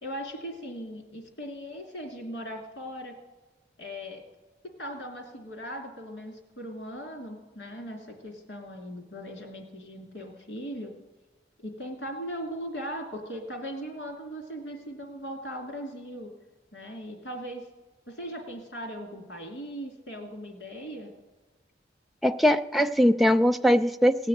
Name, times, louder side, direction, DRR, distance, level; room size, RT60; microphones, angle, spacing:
voice 1, 0.0-3.1 3.8-4.2 4.8-10.9 11.6-16.3 16.7-17.6 18.1-21.1, equal, 75° left, 2 dB, 2.9 m, -39 dB
voice 2, 22.2-24.3, equal, ahead, 7 dB, 0.4 m, -21 dB
17.0 x 6.6 x 8.9 m, 1.2 s
head